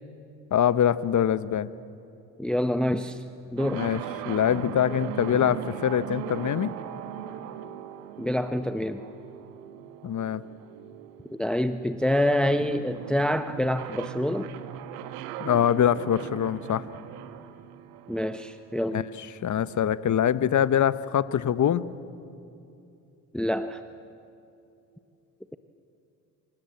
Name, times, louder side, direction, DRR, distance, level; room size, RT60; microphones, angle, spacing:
voice 1, 0.5-1.7 3.7-6.7 10.0-10.4 15.4-16.9 18.9-19.0 19.4-21.9, left 9 dB, 40° left, 15 dB, 1.1 m, -24 dB
voice 2, 2.4-3.2 3.5-3.9 8.2-9.0 11.3-14.5 18.1-19.1 23.3-23.8, left 1 dB, ahead, 10 dB, 0.9 m, -26 dB
sound 1, 3.6-19.3, right 10 dB, 80° right, 1.4 m, -39 dB
26.5 x 25.5 x 7.9 m, 2.7 s
hypercardioid pair, 60°, 45 cm